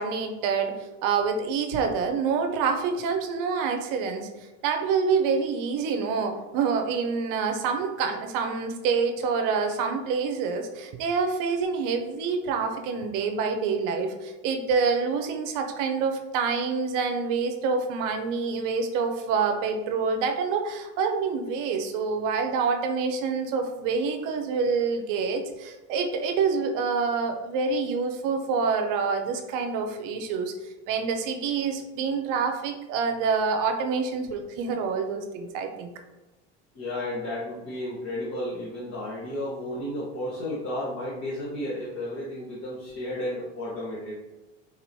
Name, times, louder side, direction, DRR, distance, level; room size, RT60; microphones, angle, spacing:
voice 1, 0.0-4.3 4.6-30.5 30.9-35.9, right 5 dB, 60° right, 5 dB, 0.6 m, -27 dB
voice 2, 36.7-44.2, left 1 dB, 40° left, -9 dB, 1.3 m, -33 dB
3.9 x 2.9 x 2.7 m, 1.1 s
supercardioid pair, 95°, 36 cm